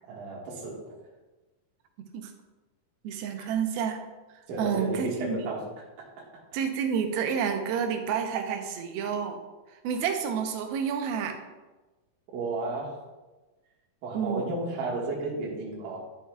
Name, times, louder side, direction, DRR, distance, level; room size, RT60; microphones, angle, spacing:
voice 1, 0.1-0.8 3.4-3.5 4.5-5.8 6.2-6.3 12.3-13.0 14.0-16.0, right 2 dB, 65° right, -4 dB, 2.7 m, -33 dB
voice 2, 3.0-4.0 4.6-5.4 6.5-9.4 9.8-11.4 14.1-14.5, right 7 dB, 85° right, 5 dB, 2.6 m, -29 dB
11.0 x 6.2 x 2.3 m, 1.2 s
omnidirectional pair, 4.3 m